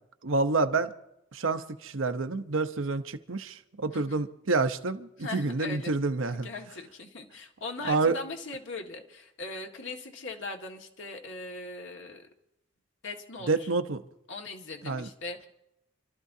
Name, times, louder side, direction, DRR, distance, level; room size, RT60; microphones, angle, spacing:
voice 1, 0.2-0.9 1.3-6.5 7.8-8.2 13.5-14.0 14.8-15.1, right 3 dB, 80° right, 0.9 m, -28 dB
voice 2, 5.2-5.9 6.3-12.3 13.0-13.7 14.3-15.5, left 3 dB, 65° left, 1.8 m, -40 dB
28.5 x 13.0 x 2.8 m
head